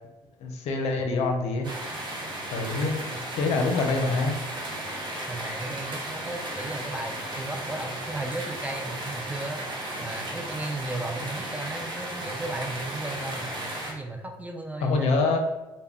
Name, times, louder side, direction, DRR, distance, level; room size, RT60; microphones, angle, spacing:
voice 1, 0.4-1.7 2.5-3.0 3.3-4.4 14.8-15.4, left 3 dB, 70° left, 3 dB, 0.5 m, -25 dB
voice 2, 1.0-1.7 3.1-3.2 3.5-4.5 5.3-9.6 10.0-13.6 13.9-15.1, right 2 dB, 15° right, 3 dB, 0.4 m, -35 dB
sound 1, 1.6-13.9, right 1 dB, 45° right, 0.7 m, -35 dB
2.2 x 2.1 x 3.4 m, 1.1 s
supercardioid pair, 75°, 11 cm